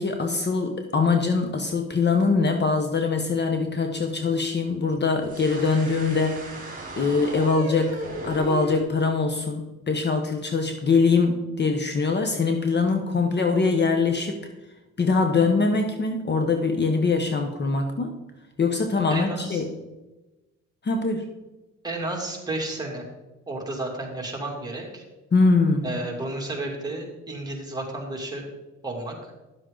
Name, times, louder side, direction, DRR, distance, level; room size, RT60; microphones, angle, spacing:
voice 1, 0.0-6.4 7.0-14.4 15.0-18.2 18.6-19.7 20.8-21.3 25.3-25.9, left 4 dB, 35° left, 5 dB, 1.0 m, -23 dB
sound 1, 5.2-8.8, right 1 dB, 30° right, 3.7 m, -35 dB
voice 2, 19.1-19.6 21.8-23.0 23.5-25.0 25.8-28.5 28.8-29.1, right 2 dB, 15° right, -1 dB, 2.6 m, -32 dB
11.0 x 7.5 x 3.8 m, 1.1 s
cardioid pair, 90°, 30 cm